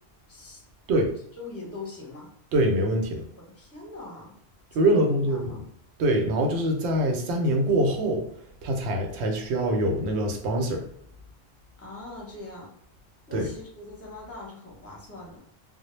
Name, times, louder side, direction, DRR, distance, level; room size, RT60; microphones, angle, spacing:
voice 1, 0.3-0.6 1.4-2.3 3.5-4.4 4.7-5.0 5.3-5.6 11.8-12.7 13.3-15.4, left 3 dB, 15° left, -3 dB, 0.6 m, -41 dB
voice 2, 2.5-3.2 4.7-5.6 6.0-8.3 8.6-10.8 13.3-13.5, right 1 dB, 80° right, 3 dB, 0.8 m, -24 dB
2.0 x 2.0 x 3.0 m, 0.65 s
omnidirectional pair, 1.1 m